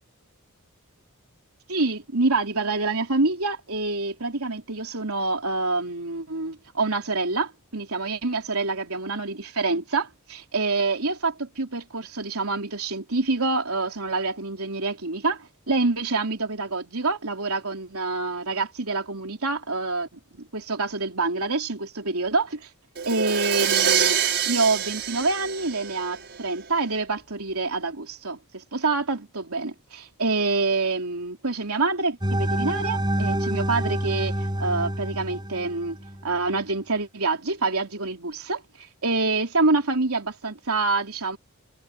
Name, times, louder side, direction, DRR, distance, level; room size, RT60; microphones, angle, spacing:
voice 1, 1.7-20.1 20.4-22.7 23.1-24.2 24.5-36.0 36.2-41.4, right 3 dB, 80° right, 3.5 m, -26 dB
Crash cymbal, 23.0-26.7, right 8 dB, 55° right, 5.8 m, -25 dB
sound 1, 32.2-36.2, right 1 dB, 20° right, 6.3 m, -27 dB
head